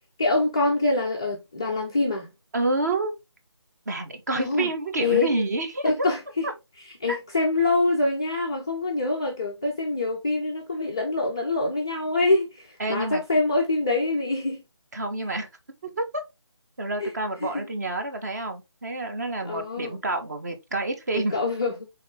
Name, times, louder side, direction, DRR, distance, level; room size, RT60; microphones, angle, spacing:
voice 1, 0.2-2.3 4.3-4.7 5.0-5.5 5.8-6.5 7.0-14.6 17.0-17.1 17.4-17.7 19.4-20.0 21.1-21.9, left 2 dB, 10° left, 0.4 m, -25 dB
voice 2, 2.5-3.1 3.9-6.1 6.4-6.5 7.1-7.2 12.8-13.2 14.9-15.5 15.8-16.0 16.8-21.3, right 2 dB, 35° right, 1.2 m, -28 dB
6.3 x 4.0 x 3.7 m
figure-of-eight pair, 160°, 15 cm